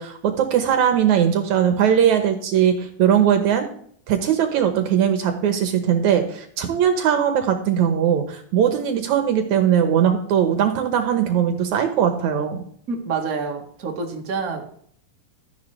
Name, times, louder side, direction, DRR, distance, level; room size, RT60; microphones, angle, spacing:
voice 1, 0.0-3.7 4.1-12.6, right 9 dB, 70° right, 6 dB, 2.3 m, -20 dB
voice 2, 12.9-14.6, right 4 dB, 35° right, 1 dB, 1.5 m, -27 dB
13.0 x 10.5 x 3.3 m, 0.62 s
omnidirectional pair, 3.7 m